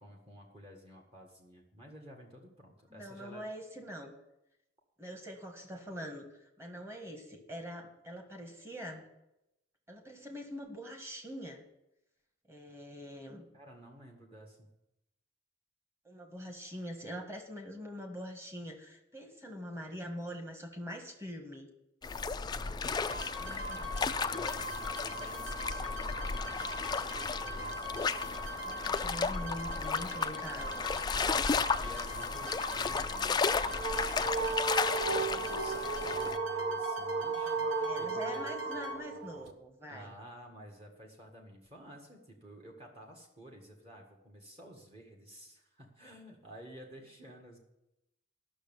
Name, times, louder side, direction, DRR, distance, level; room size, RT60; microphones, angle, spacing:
voice 1, 0.0-3.4 13.5-14.7 22.5-28.6 30.9-38.4 39.9-47.6, equal, 30° right, 1 dB, 1.7 m, -52 dB
voice 2, 2.9-4.1 5.0-6.3 6.6-9.0 9.9-11.6 12.5-13.4 16.0-21.7 24.3-24.5 28.6-30.8 37.4-40.1, equal, 15° right, 3 dB, 1.6 m, -44 dB
Gentle waves on a lake, 22.0-36.4, left 5 dB, 20° left, 0.3 m, -34 dB
sound 1, 23.1-39.0, equal, 80° right, 2.3 m, -41 dB
sound 2, 33.4-39.5, right 4 dB, 60° right, 1.1 m, -35 dB
13.0 x 6.3 x 7.1 m, 0.89 s
head